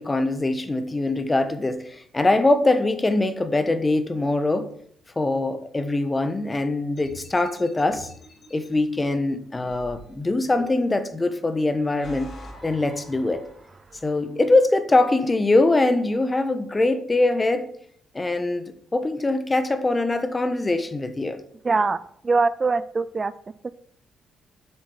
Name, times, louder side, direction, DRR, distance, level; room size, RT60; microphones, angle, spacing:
voice 1, 0.0-4.7 5.2-8.1 8.5-12.3 12.6-13.4 14.0-17.7 18.1-21.4, left 2 dB, 20° left, 1.2 m, -22 dB
sound 1, 7.0-8.7 9.6-11.1 11.7-13.9, left 2 dB, 50° left, 3.6 m, -44 dB
voice 2, 21.6-22.0 22.2-23.3, right 4 dB, 30° right, 0.4 m, -22 dB
8.1 x 6.3 x 7.3 m
cardioid pair, 90°, 0 cm